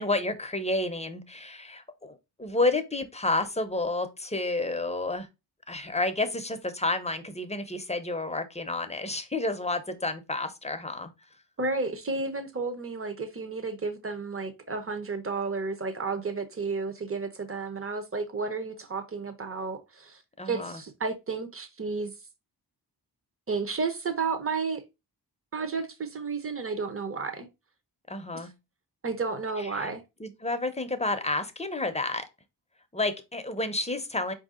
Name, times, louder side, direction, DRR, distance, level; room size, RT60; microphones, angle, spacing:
voice 1, 0.0-5.3 5.7-11.1 20.4-20.8 28.1-28.5 29.6-29.9 30.2-32.3 32.9-34.3, left 2 dB, 15° left, 0.6 m, -30 dB
voice 2, 11.6-22.1 23.5-24.8 25.5-27.5 28.3-28.5 29.0-30.0, right 4 dB, 30° right, 0.8 m, -32 dB
4.6 x 2.7 x 3.6 m
wide cardioid pair, 85°, 42 cm